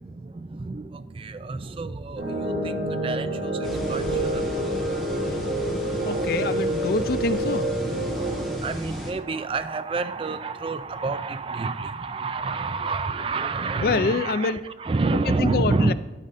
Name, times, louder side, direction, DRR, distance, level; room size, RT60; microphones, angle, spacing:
voice 1, 0.0-6.6 8.0-15.9, right 3 dB, 30° right, 11 dB, 0.3 m, -29 dB
sound 1, 2.2-8.6, right 1 dB, 60° right, 3.0 m, -28 dB
sound 2, 3.6-9.1, equal, ahead, 1.1 m, -34 dB
voice 2, 6.0-7.7 13.8-14.6 15.3-15.9, left 4 dB, 55° left, 14 dB, 0.4 m, -26 dB
11.5 x 5.2 x 4.1 m, 1.2 s
head